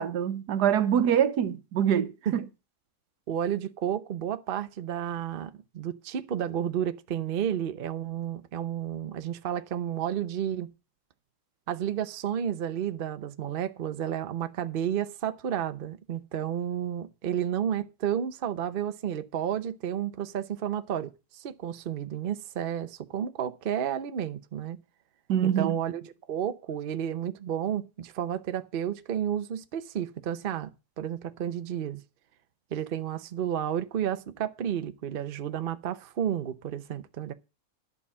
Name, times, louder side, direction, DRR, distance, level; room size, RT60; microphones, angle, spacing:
voice 1, 0.0-2.4 25.3-25.8, right 9 dB, 80° right, 1.4 m, -25 dB
voice 2, 3.3-10.7 11.7-24.8 25.4-32.0 32.7-37.3, right 9 dB, 45° right, 0.7 m, -31 dB
11.0 x 5.6 x 7.2 m
omnidirectional pair, 1.7 m